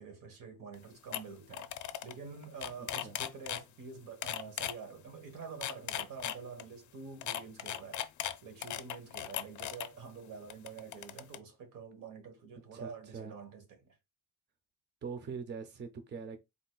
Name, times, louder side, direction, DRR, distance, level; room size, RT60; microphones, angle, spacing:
voice 1, 0.0-1.7 2.0-8.1 8.4-13.9, right 5 dB, 75° right, 1.4 m, -47 dB
Mouse click and mouse wheel, 0.7-0.8 1.1-1.2 1.5-2.1 2.4-3.6 4.2-4.7 5.4-6.6 7.2-9.9 10.5-11.4, left 11 dB, 65° left, 0.5 m, -37 dB
voice 2, 2.8-3.2 12.7-13.4 15.0-16.4, right 5 dB, 35° right, 0.5 m, -43 dB
4.1 x 3.8 x 2.3 m
wide cardioid pair, 175°, 32 cm